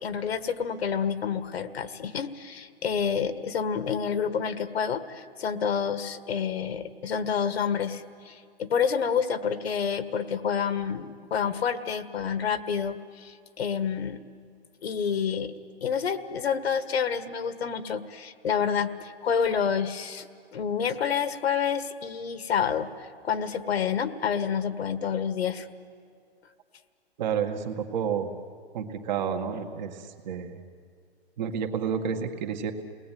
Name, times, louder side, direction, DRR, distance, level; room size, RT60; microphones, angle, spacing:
voice 1, 0.0-14.2 14.8-15.5 15.8-25.7, left 7 dB, 75° left, 12 dB, 1.7 m, -28 dB
voice 2, 27.2-28.3 28.7-30.6 31.4-32.7, right 7 dB, 45° right, 5 dB, 2.1 m, -30 dB
29.0 x 19.5 x 9.3 m, 2.2 s
hypercardioid pair, 155°, 32 cm